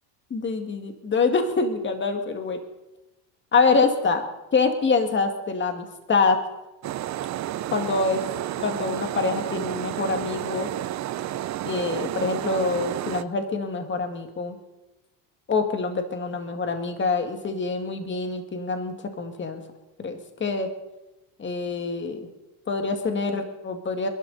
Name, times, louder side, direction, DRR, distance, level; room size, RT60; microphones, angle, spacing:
voice 1, 0.3-2.6 3.5-4.2 4.5-6.4 7.7-8.2 8.6-10.7 11.6-14.6 15.5-19.6 20.0-20.7 21.4-22.3 22.7-24.1, left 4 dB, 25° left, 6 dB, 2.1 m, -25 dB
sound 1, 6.8-13.2, right 13 dB, 35° right, 0.6 m, -31 dB
28.5 x 11.5 x 4.1 m, 1.0 s
cardioid pair, 135°, 49 cm